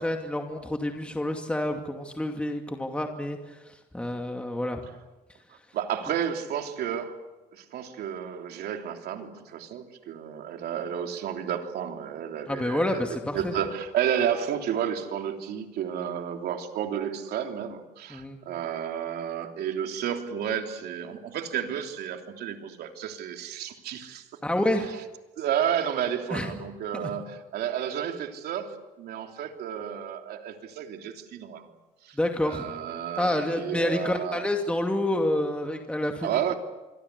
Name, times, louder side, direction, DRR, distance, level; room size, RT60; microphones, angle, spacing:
voice 1, 0.0-4.8 12.5-13.5 18.1-18.4 24.4-24.9 26.3-26.5 26.9-27.1 32.1-32.7 33.2-36.3, left 1 dB, 5° left, 3 dB, 2.5 m, -28 dB
voice 2, 5.7-7.2 7.5-24.3 24.9-25.0 25.4-31.7 32.0-34.5 36.2-36.5, right 9 dB, 70° right, 5 dB, 3.3 m, -31 dB
26.0 x 23.5 x 8.4 m, 1.1 s
cardioid pair, 110°, 17 cm